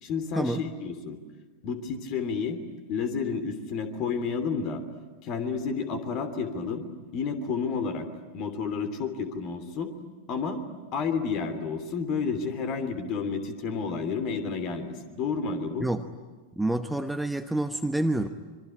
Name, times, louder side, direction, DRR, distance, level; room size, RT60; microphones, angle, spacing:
voice 1, 0.0-1.2 1.6-2.6 2.9-4.8 5.2-6.8 7.1-8.1 8.3-9.9 10.3-10.6 10.9-15.9, left 5 dB, 40° left, 9 dB, 3.0 m, -30 dB
voice 2, 16.5-18.3, right 1 dB, 5° right, 8 dB, 1.0 m, -27 dB
26.0 x 24.0 x 9.7 m, 1.4 s
figure-of-eight pair, 90°, 0 cm